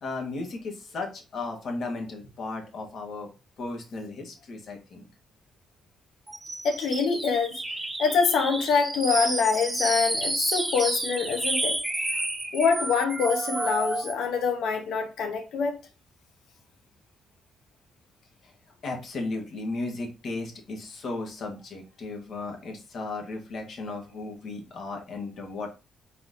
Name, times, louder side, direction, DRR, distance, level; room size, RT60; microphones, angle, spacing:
voice 1, 0.0-3.3 3.6-5.1 18.8-25.7, left 3 dB, 65° left, 1.6 m, -35 dB
sound 1, 6.3-14.3, right 2 dB, 15° right, 1.0 m, -30 dB
voice 2, 6.6-7.6 8.0-11.8 12.5-15.7, left 5 dB, 80° left, 1.0 m, -25 dB
4.3 x 3.8 x 2.7 m
supercardioid pair, 65°, 0 cm